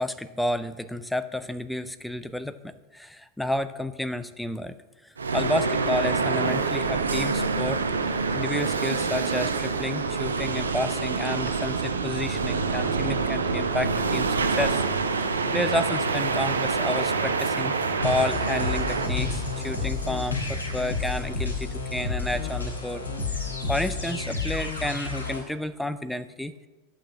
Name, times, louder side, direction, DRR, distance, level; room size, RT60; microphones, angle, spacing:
voice 1, 0.0-4.7 5.0-7.8 8.3-14.8 15.5-23.0 23.3-26.5, left 1 dB, ahead, 12 dB, 0.6 m, -31 dB
sound 1, 5.2-20.3, right 4 dB, 70° right, 1.0 m, -26 dB
sound 2, 18.0-25.4, left 4 dB, 75° left, 3.3 m, -30 dB
11.0 x 8.9 x 5.8 m, 1.1 s
figure-of-eight pair, 90°, 0 cm